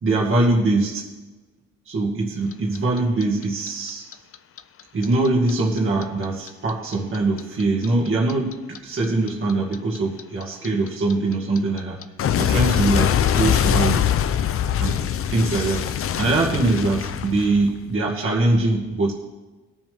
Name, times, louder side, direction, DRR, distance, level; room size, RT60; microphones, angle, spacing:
voice 1, 0.0-1.1 1.9-4.1 4.9-12.0 12.4-14.1 14.8-19.1, right 2 dB, 45° right, -3 dB, 2.0 m, -22 dB
Clock, 2.5-5.5 5.8-8.8 9.0-17.9, left 9 dB, 45° left, 0.6 m, -23 dB
19.0 x 7.3 x 3.5 m, 1.2 s
cardioid pair, 90°, 30 cm